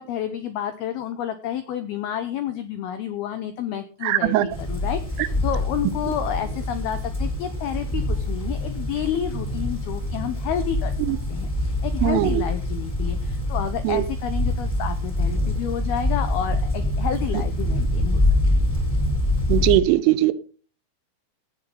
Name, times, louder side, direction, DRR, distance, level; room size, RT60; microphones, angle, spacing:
voice 1, 0.0-10.9 11.3-18.2 18.5-18.6, left 9 dB, 90° left, 10 dB, 2.2 m, -30 dB
voice 2, 4.0-4.5 11.1-11.2 12.0-12.4 13.8-14.0 19.5-20.3, right 15 dB, 80° right, 13 dB, 3.2 m, -20 dB
sound 1, 4.5-19.8, left 1 dB, 10° left, 2.8 m, -25 dB
17.0 x 7.2 x 5.3 m, 0.39 s
omnidirectional pair, 5.7 m